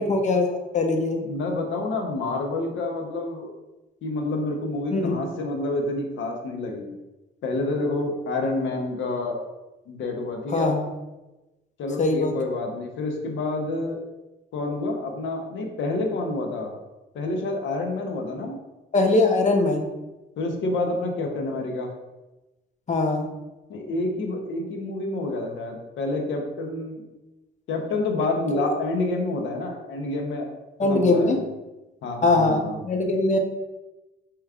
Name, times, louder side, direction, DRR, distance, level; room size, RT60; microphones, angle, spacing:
voice 1, 0.0-1.2 4.9-5.1 10.5-10.9 12.0-12.3 18.9-19.9 22.9-23.3 28.5-28.6 30.8-31.4 32.2-33.4, left 2 dB, 35° left, 4 dB, 0.7 m, -21 dB
voice 2, 1.2-3.5 4.0-6.9 7.4-9.4 9.9-10.7 11.8-14.0 14.5-16.7 17.1-18.6 20.4-21.9 23.7-27.0 27.7-30.5 30.8-31.4 32.0-32.8, left 2 dB, 75° left, 3 dB, 0.8 m, -28 dB
4.9 x 3.0 x 2.3 m, 1.0 s
cardioid pair, 90°, 20 cm